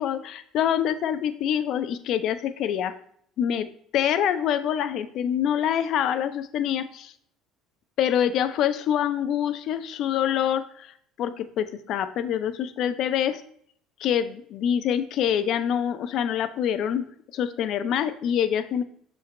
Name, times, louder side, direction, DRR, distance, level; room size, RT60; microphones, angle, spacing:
voice 1, 0.0-2.9 3.4-3.7 3.9-7.1 8.0-10.9 11.2-13.4 14.0-17.1 17.3-18.8, left 9 dB, 60° left, 12 dB, 0.5 m, -25 dB
6.5 x 5.2 x 3.0 m, 0.63 s
hypercardioid pair, 65°, 0 cm